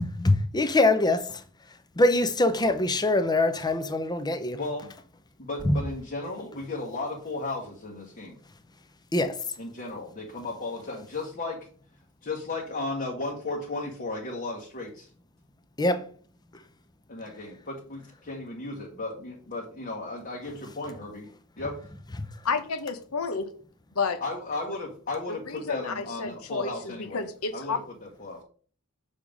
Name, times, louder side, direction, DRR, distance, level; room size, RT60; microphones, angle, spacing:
voice 1, 0.2-1.2 2.0-4.6 5.7-5.8 9.1-9.3 15.8-16.0, left 2 dB, 20° left, 0.6 m, -23 dB
voice 2, 4.5-4.9 5.4-8.3 9.6-11.6 12.2-15.1 17.1-21.3 21.6-21.8 24.2-27.3 27.5-28.4, left 2 dB, 45° left, 1.2 m, -35 dB
voice 3, 22.4-23.5 23.9-24.2 25.5-27.8, left 4 dB, 85° left, 0.9 m, -30 dB
6.5 x 3.6 x 5.3 m
head